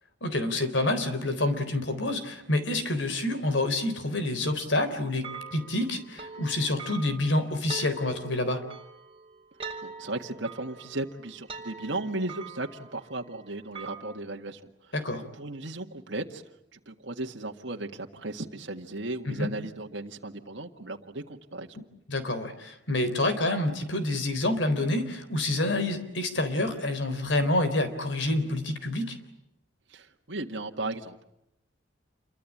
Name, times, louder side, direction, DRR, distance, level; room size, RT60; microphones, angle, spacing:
voice 1, 0.2-8.6 14.9-15.2 19.3-19.5 22.1-29.2, left 2 dB, 70° left, 10 dB, 3.9 m, -28 dB
sound 1, 5.2-14.2, right 4 dB, 30° right, 3.8 m, -43 dB
voice 2, 9.8-14.9 15.4-16.4 16.7-21.7 29.9-31.2, right 2 dB, 65° right, 2 dB, 1.8 m, -36 dB
28.5 x 23.5 x 8.6 m, 0.85 s
head